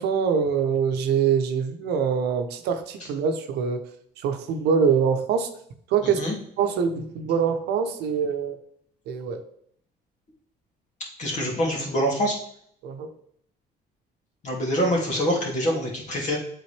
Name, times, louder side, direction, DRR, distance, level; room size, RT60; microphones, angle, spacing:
voice 1, 0.0-3.8 4.2-5.5 5.9-6.2 6.6-8.6 9.1-9.4 12.8-13.1, right 6 dB, 75° right, 7 dB, 0.8 m, -24 dB
voice 2, 11.2-12.3 14.4-16.4, equal, 45° left, -2 dB, 2.4 m, -25 dB
8.2 x 3.9 x 3.3 m, 0.66 s
cardioid pair, 110°, 17 cm